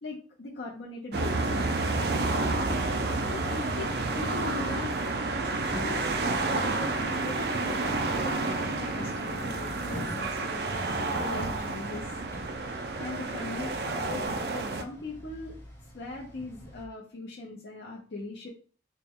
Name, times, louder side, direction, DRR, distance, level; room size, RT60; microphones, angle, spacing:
voice 1, 0.0-1.7 3.2-3.9 4.1-4.9 5.4-6.0 6.4-10.6 11.1-12.2 12.6-14.3 14.5-15.6 15.9-18.5, left 2 dB, 75° left, -3 dB, 0.6 m, -40 dB
sound 1, 1.1-14.8, right 3 dB, 65° right, 0.4 m, -30 dB
sound 2, 2.4-16.8, equal, 15° left, 0.9 m, -45 dB
4.1 x 2.2 x 3.5 m, 0.39 s
head